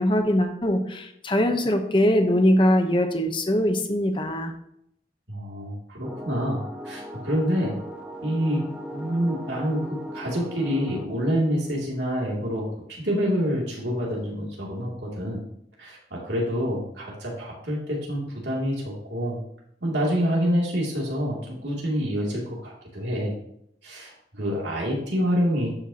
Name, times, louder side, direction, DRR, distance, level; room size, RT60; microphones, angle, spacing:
voice 1, 0.0-4.5, equal, 30° left, 5 dB, 0.9 m, -22 dB
voice 2, 5.3-7.7 8.2-8.6 8.9-9.8 10.1-15.4 15.8-19.4 19.8-23.3 23.8-25.7, equal, 90° right, -3 dB, 2.7 m, -27 dB
sound 1, 6.0-11.1, equal, 5° right, 0.7 m, -38 dB
12.5 x 5.7 x 2.9 m, 0.74 s
head